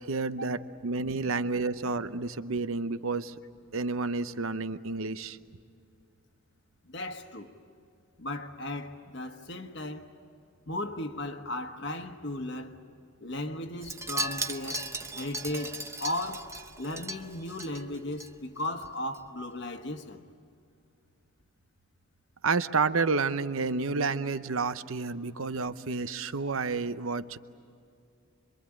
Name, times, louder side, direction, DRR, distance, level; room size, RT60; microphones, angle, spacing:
voice 1, 0.1-3.3 3.7-5.4 22.4-27.4, right 4 dB, 70° right, 0.8 m, -30 dB
voice 2, 6.8-7.5 8.2-10.1 10.7-12.8 13.2-14.9 15.2-20.2, left 1 dB, 55° left, 1.3 m, -36 dB
Wind chime, 13.8-18.3 18.6-18.9 19.1-19.2, right 2 dB, 15° right, 0.7 m, -37 dB
26.5 x 23.5 x 8.7 m
head